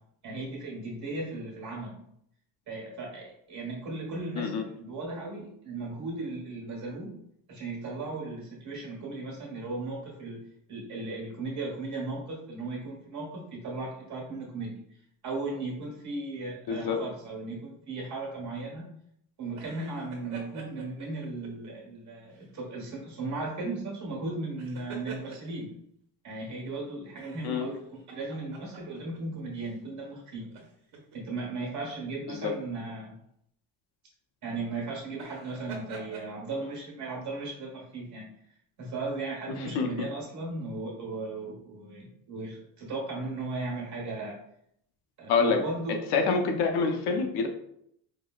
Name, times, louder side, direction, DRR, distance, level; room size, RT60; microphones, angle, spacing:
voice 1, 0.2-2.0 2.7-7.2 7.5-14.8 15.2-18.9 19.4-25.7 26.2-30.5 31.1-33.1 34.4-38.3 38.8-44.4 45.2-46.1, right 3 dB, 45° right, -3 dB, 1.1 m, -36 dB
voice 2, 16.7-17.0 27.4-27.7 32.3-32.5 39.7-40.1 45.3-45.6 45.9-47.5, left 5 dB, 75° left, 4 dB, 0.6 m, -26 dB
sound 1, 19.5-21.7 22.3-22.5 24.4-25.7 27.2-29.2 29.5-29.7 30.4-31.2 32.3-32.5 35.1-36.3, right 4 dB, 80° right, 1.1 m, -46 dB
4.7 x 2.0 x 2.3 m, 0.71 s
cardioid pair, 165°, 40 cm